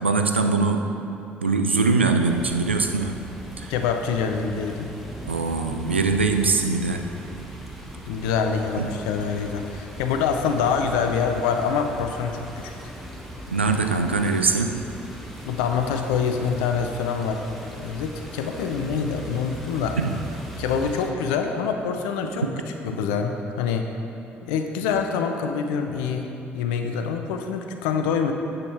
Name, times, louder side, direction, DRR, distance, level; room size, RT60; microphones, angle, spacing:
voice 1, 0.0-0.9 1.4-3.2 3.6-3.7 5.3-7.1 8.8-8.9 13.5-14.8 20.0-20.2, right 4 dB, 90° right, 5 dB, 0.4 m, -22 dB
sound 1, 2.2-21.1, right 1 dB, ahead, 1.2 m, -39 dB
voice 2, 3.7-4.9 8.1-12.7 15.5-20.0 20.6-22.5 22.8-23.9 24.4-26.3 26.5-28.3, left 6 dB, 70° left, 5 dB, 0.5 m, -25 dB
9.3 x 7.2 x 3.4 m, 3.0 s
figure-of-eight pair, 45°, 6 cm